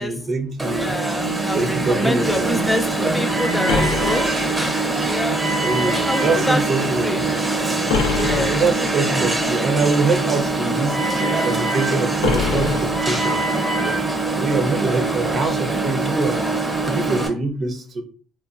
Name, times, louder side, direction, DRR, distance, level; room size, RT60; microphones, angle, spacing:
voice 1, 0.0-1.0 1.5-3.1 5.6-7.4 8.5-11.0 11.4-14.0 14.3-16.5 16.9-18.0, right 3 dB, 50° right, 4 dB, 0.6 m, -24 dB
Alarm, 0.6-17.3, right 2 dB, 15° right, 0.7 m, -23 dB
voice 2, 0.7-2.9 3.1-4.3 5.1-5.4 5.9-6.6 7.0-7.2 8.2-8.5, left 1 dB, 10° left, 5 dB, 0.3 m, -25 dB
sound 1, 3.7-5.1 7.9-9.0 12.2-13.5, left 5 dB, 85° left, 0.4 m, -25 dB
2.9 x 2.2 x 2.4 m, 0.40 s
supercardioid pair, 80°, 0 cm